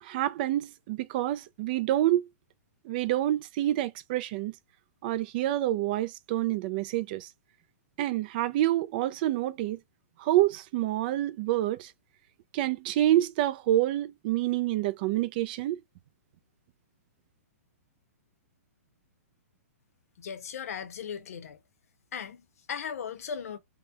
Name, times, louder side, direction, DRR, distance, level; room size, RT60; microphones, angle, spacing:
voice 1, 0.0-2.3 2.8-4.5 5.0-7.3 8.0-9.8 10.2-11.9 12.5-15.8, right 14 dB, 35° right, 0.3 m, -27 dB
voice 2, 20.2-21.6 22.1-23.6, left 7 dB, 65° left, 0.7 m, -37 dB
2.8 x 2.1 x 3.4 m
hypercardioid pair, 155°, 8 cm